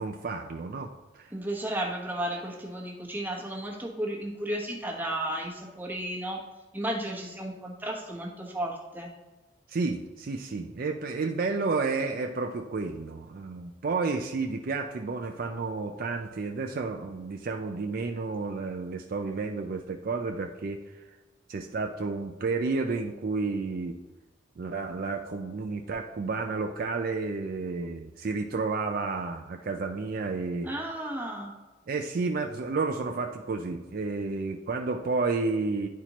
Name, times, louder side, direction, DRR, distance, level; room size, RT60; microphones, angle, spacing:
voice 1, 0.0-1.3 9.7-20.8 21.5-24.0 24.6-30.7 31.9-35.9, right 4 dB, 50° right, 4 dB, 0.4 m, -31 dB
voice 2, 1.3-6.4 6.7-9.1 30.6-31.5, right 1 dB, 10° right, -2 dB, 1.1 m, -33 dB
10.5 x 4.2 x 3.0 m, 1.2 s
head